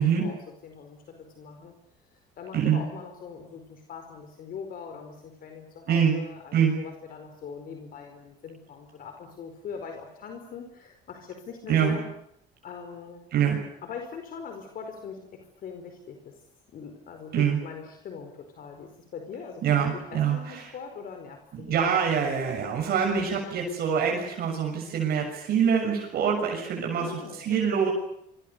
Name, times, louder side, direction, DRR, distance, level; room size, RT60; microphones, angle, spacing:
voice 1, 0.0-1.8 2.4-12.1 12.6-13.2 13.8-16.4 16.7-19.6 19.9-21.9 27.0-27.7, left 6 dB, 60° left, 5 dB, 4.8 m, -41 dB
voice 2, 11.7-12.0 13.3-13.6 17.3-17.6 19.6-20.6 21.5-27.1 27.4-27.9, right 7 dB, 65° right, 1 dB, 6.7 m, -25 dB
27.5 x 25.0 x 6.9 m, 0.72 s
cardioid pair, 110°, 17 cm